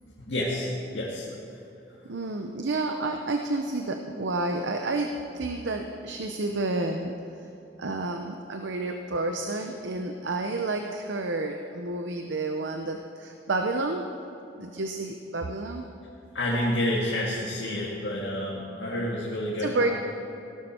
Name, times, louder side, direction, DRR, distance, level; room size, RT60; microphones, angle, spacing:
voice 1, 0.2-1.3 16.3-20.0, left 1 dB, 85° left, -5 dB, 1.9 m, -29 dB
voice 2, 2.0-7.1 7.8-14.0 14.6-15.8 19.6-19.9, right 2 dB, 90° right, 4 dB, 0.7 m, -30 dB
17.5 x 12.0 x 4.4 m, 2.8 s
head